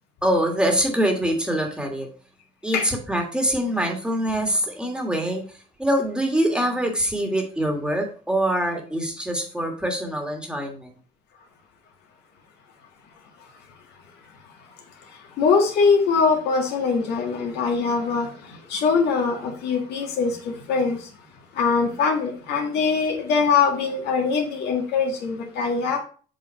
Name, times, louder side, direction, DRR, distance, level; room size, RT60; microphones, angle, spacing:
voice 1, 0.2-2.1 2.6-5.4 5.8-10.9, equal, 5° right, 3 dB, 1.6 m, -24 dB
voice 2, 14.4-21.1 21.5-26.0, left 5 dB, 80° left, 2 dB, 1.7 m, -23 dB
7.3 x 3.8 x 4.2 m, 0.40 s
cardioid pair, 110°, 17 cm